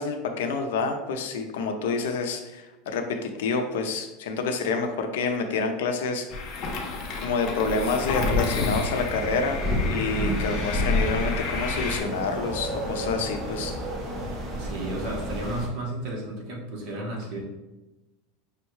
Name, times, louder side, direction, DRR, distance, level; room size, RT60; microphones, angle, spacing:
voice 1, 0.0-6.3 7.2-9.6 9.9-13.7, left 4 dB, 85° left, 5 dB, 0.5 m, -28 dB
sound 1, 6.3-12.0, left 3 dB, 40° left, 0.6 m, -29 dB
sound 2, 8.6-15.7, equal, 25° right, 0.7 m, -32 dB
voice 2, 14.6-17.4, right 1 dB, 45° right, -2 dB, 1.0 m, -33 dB
5.4 x 2.2 x 3.0 m, 1.0 s
supercardioid pair, 160°, 0 cm